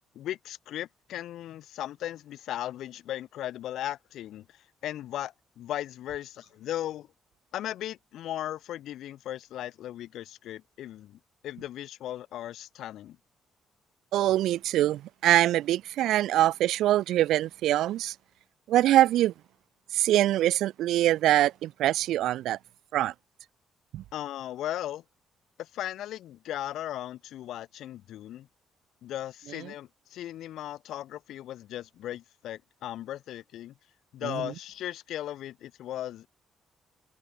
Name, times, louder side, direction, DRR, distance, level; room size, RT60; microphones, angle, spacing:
voice 1, 0.1-7.1 7.5-13.2 24.1-25.0 25.6-28.5 29.0-33.7 34.1-36.3, left 12 dB, 80° left, 6.8 m, -37 dB
voice 2, 14.1-18.1 18.7-19.3 19.9-22.6 22.9-23.1 23.9-24.0, right 13 dB, 85° right, 1.4 m, -24 dB
cardioid pair, 90°, 0 cm